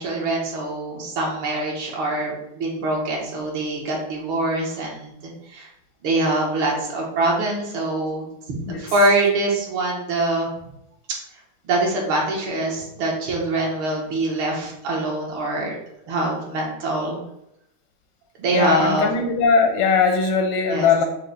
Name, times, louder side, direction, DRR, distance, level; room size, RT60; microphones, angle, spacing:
voice 1, 0.0-5.7 6.0-8.2 8.7-10.5 11.6-15.8 16.1-17.2 18.4-19.1 20.7-20.9, right 2 dB, 80° right, -2 dB, 1.9 m, -24 dB
voice 2, 18.5-21.0, left 5 dB, 85° left, 4 dB, 1.4 m, -19 dB
6.3 x 2.1 x 3.9 m, 0.81 s
omnidirectional pair, 2.3 m